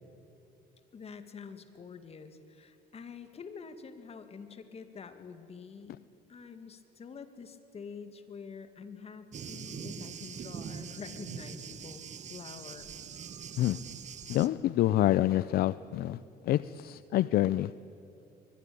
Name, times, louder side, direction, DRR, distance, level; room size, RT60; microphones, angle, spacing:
voice 1, 0.9-6.0 6.3-12.0 12.3-12.9, left 5 dB, 35° left, 9 dB, 2.2 m, -47 dB
Thunder, 9.3-14.5, right 7 dB, 45° right, 1.2 m, -43 dB
voice 2, 14.3-16.2 16.4-17.7, left 14 dB, 65° left, 16 dB, 0.5 m, -27 dB
23.5 x 21.5 x 8.7 m, 2.9 s
cardioid pair, 110°, 17 cm